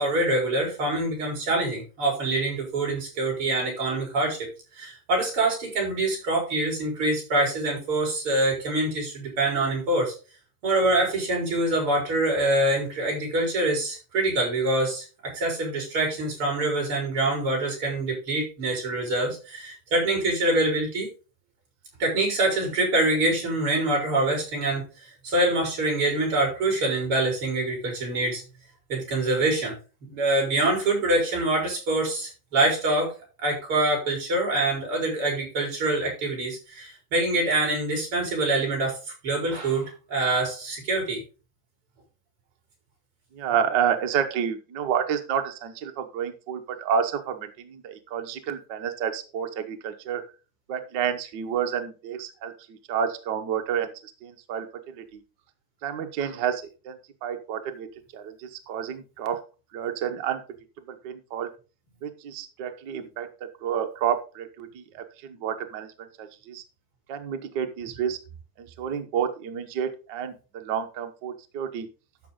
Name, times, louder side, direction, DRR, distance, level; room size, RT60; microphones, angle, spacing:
voice 1, 0.0-4.5 4.8-10.1 10.6-21.1 22.0-24.9 25.2-28.4 28.9-29.7 30.0-33.1 33.4-39.0 39.2-41.2, right 2 dB, 45° right, 1 dB, 5.0 m, -25 dB
voice 2, 43.3-50.2 50.7-55.2 55.8-57.9 58.1-59.4 59.7-60.4 60.9-61.5 62.0-66.6 67.1-68.2 68.6-71.9, right 8 dB, 85° right, 7 dB, 0.9 m, -30 dB
12.5 x 6.0 x 3.7 m, 0.32 s
omnidirectional pair, 3.6 m